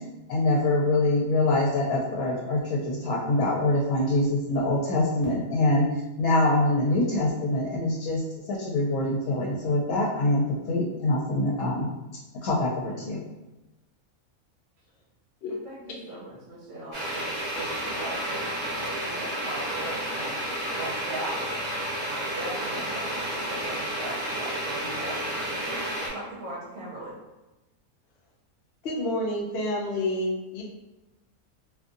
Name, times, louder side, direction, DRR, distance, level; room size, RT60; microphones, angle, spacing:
voice 1, 0.3-11.9 12.4-13.2, left 2 dB, 80° left, -4 dB, 1.0 m, -24 dB
voice 2, 15.5-21.4 22.1-27.2, right 1 dB, 65° right, -6 dB, 1.0 m, -40 dB
sound 1, 16.9-26.1, right 1 dB, 30° right, 0.6 m, -31 dB
voice 3, 28.8-30.6, left 1 dB, 60° left, -2 dB, 0.7 m, -29 dB
2.6 x 2.6 x 2.5 m, 1.0 s
omnidirectional pair, 1.5 m